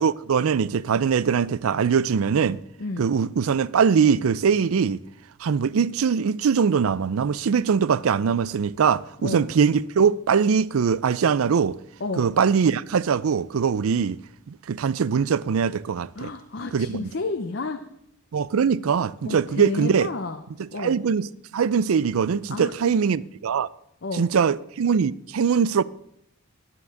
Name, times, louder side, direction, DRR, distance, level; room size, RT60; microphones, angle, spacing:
voice 1, 0.0-2.6 3.0-5.0 5.4-11.8 12.2-14.2 14.5-16.3 16.7-17.1 18.3-20.1 20.8-21.3 21.5-23.7 24.2-25.8, right 6 dB, 80° right, 0.4 m, -22 dB
voice 2, 16.2-17.8 19.2-20.4 20.7-21.0 22.5-23.1 24.0-24.3, left 3 dB, 55° left, 0.7 m, -31 dB
9.7 x 9.5 x 6.4 m
head